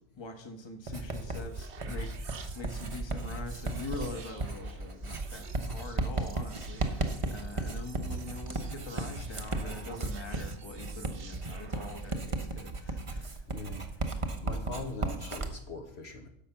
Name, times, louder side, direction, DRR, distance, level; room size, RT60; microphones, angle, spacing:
voice 1, 0.2-2.2 2.5-13.5, left 2 dB, 20° left, 5 dB, 1.2 m, -43 dB
Writing, 0.9-15.5, right 2 dB, 30° right, 0.9 m, -35 dB
sound 1, 0.9-12.4, right 6 dB, 60° right, 1.2 m, -51 dB
voice 2, 13.5-13.9 14.1-16.3, left 3 dB, 55° left, 4 dB, 1.3 m, -41 dB
10.5 x 6.7 x 5.8 m, 0.72 s
omnidirectional pair, 1.3 m